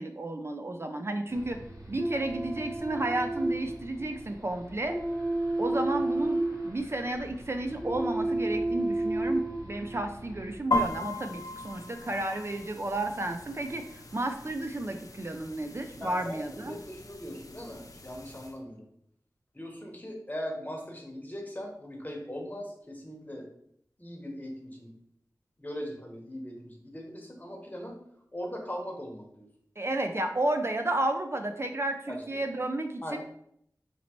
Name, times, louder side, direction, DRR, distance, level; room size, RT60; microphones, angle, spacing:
voice 1, 0.0-1.6 1.9-5.0 5.6-6.4 6.6-16.7 29.8-33.2, right 1 dB, 40° right, 5 dB, 0.4 m, -32 dB
sound 1, 1.3-10.6, right 2 dB, 55° right, 1.3 m, -32 dB
sound 2, 10.7-18.5, left 1 dB, 60° left, 0.5 m, -37 dB
voice 2, 16.0-18.9 19.5-23.5 24.0-24.9 25.6-28.0 28.3-29.5 32.1-32.4 33.0-33.2, equal, 25° left, 1 dB, 1.1 m, -40 dB
5.2 x 2.9 x 3.0 m, 0.70 s
wide cardioid pair, 50°, 7 cm